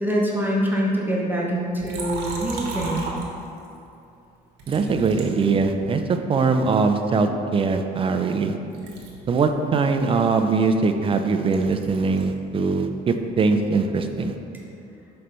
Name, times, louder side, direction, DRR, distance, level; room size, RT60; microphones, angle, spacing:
voice 1, 0.0-3.1, equal, 10° right, -4 dB, 0.8 m, -24 dB
Liquid, 1.8-3.8 4.6-6.1 6.7-8.5 8.7-12.4 12.7-14.3, right 3 dB, 85° right, 1.2 m, -37 dB
voice 2, 4.7-8.6 9.3-14.4, right 4 dB, 30° right, 7 dB, 0.4 m, -21 dB
6.0 x 3.2 x 5.3 m, 2.7 s
cardioid pair, 110°, 17 cm